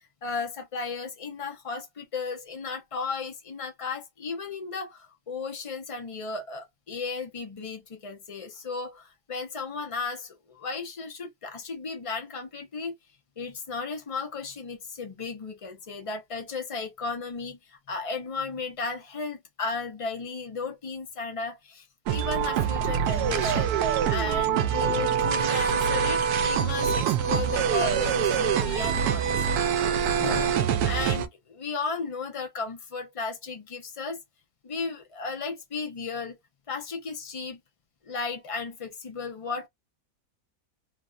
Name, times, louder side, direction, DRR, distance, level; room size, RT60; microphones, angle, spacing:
voice 1, 0.2-12.9 13.4-17.6 17.9-29.7 30.1-34.2 34.6-36.4 36.7-37.6 38.0-39.7, left 4 dB, 65° left, 0.3 m, -35 dB
sound 1, 22.1-31.3, right 7 dB, 80° right, 1.1 m, -25 dB
3.4 x 2.1 x 2.4 m
omnidirectional pair, 1.6 m